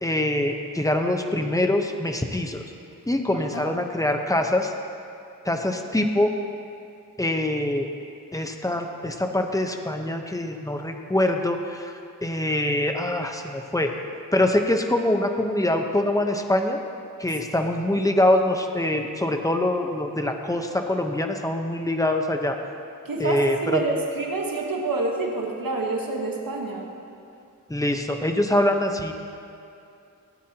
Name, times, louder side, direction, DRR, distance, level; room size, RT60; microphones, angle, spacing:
voice 1, 0.0-2.6 3.1-4.7 5.4-6.3 7.2-7.9 8.3-11.9 12.2-13.9 14.3-16.8 17.2-22.6 23.2-23.8 27.7-29.1, left 1 dB, 10° left, 4 dB, 0.9 m, -24 dB
voice 2, 3.3-3.6 23.0-26.9, right 3 dB, 70° right, 0 dB, 1.4 m, -27 dB
16.0 x 9.4 x 2.9 m, 2.6 s
wide cardioid pair, 50°, 35 cm